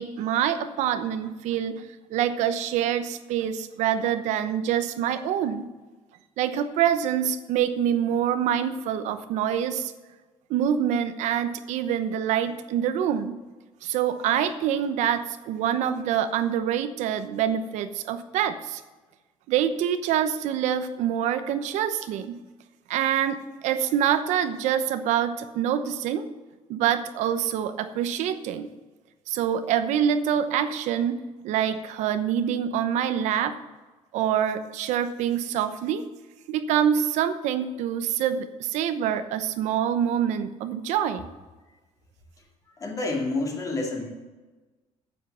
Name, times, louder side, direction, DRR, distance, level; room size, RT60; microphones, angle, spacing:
voice 1, 0.0-1.8 2.1-5.7 6.4-9.9 10.5-13.4 13.8-18.8 19.5-22.4 22.9-23.4 23.6-26.2 26.7-28.7 29.3-31.2 31.4-33.5 34.1-36.0 36.5-41.3, right 9 dB, 85° right, 10 dB, 0.9 m, -25 dB
voice 2, 42.8-44.1, left 2 dB, 30° left, 1 dB, 2.3 m, -28 dB
9.3 x 8.2 x 6.9 m, 1.2 s
cardioid pair, 155°, 12 cm